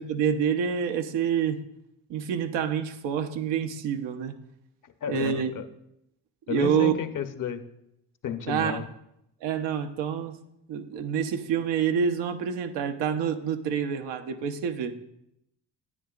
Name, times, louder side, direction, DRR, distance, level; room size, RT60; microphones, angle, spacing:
voice 1, 0.0-1.6 2.1-4.3 5.1-5.5 6.5-6.9 8.5-8.8 9.4-10.4 10.7-14.9, right 7 dB, 70° right, 7 dB, 0.9 m, -27 dB
voice 2, 5.0-5.6 6.5-7.6 8.2-8.8, left 8 dB, 45° left, 10 dB, 0.8 m, -32 dB
9.8 x 9.4 x 2.4 m, 0.81 s
supercardioid pair, 65°, 44 cm